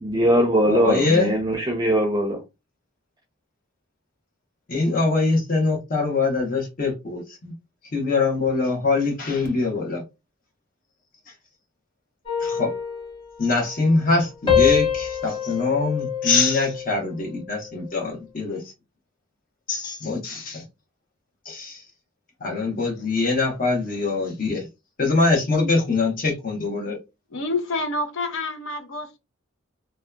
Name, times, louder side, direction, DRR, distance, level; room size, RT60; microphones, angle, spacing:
voice 1, 0.0-2.4, right 1 dB, 20° right, 0.5 m, -21 dB
voice 2, 0.7-1.3 4.7-7.5 7.9-10.0 12.4-12.7 13.4-18.6 19.7-20.6 21.5-21.8 22.4-24.7 25.0-27.0, left 3 dB, 45° left, 0.8 m, -23 dB
sound 1, 12.3-14.1 14.5-17.0 17.5-17.8, left 8 dB, 25° left, 1.5 m, -25 dB
voice 3, 27.3-29.2, left 2 dB, 70° left, 0.5 m, -28 dB
2.7 x 2.2 x 2.2 m
head